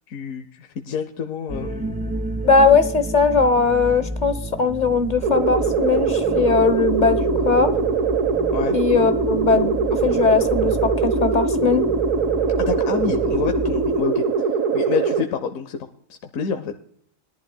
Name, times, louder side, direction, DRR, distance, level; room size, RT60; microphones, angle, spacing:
voice 1, 0.1-2.0 8.5-8.8 12.6-14.2 14.7-15.9 16.3-16.7, left 6 dB, 85° left, 6 dB, 1.2 m, -28 dB
sound 1, 1.5-14.0, equal, 5° right, 1.5 m, -31 dB
voice 2, 2.4-7.2 7.4-7.7 8.7-11.9, left 4 dB, 40° left, 10 dB, 1.0 m, -19 dB
sound 2, 5.2-15.2, right 4 dB, 75° right, 1.5 m, -22 dB
20.5 x 11.5 x 2.2 m, 0.65 s
omnidirectional pair, 1.4 m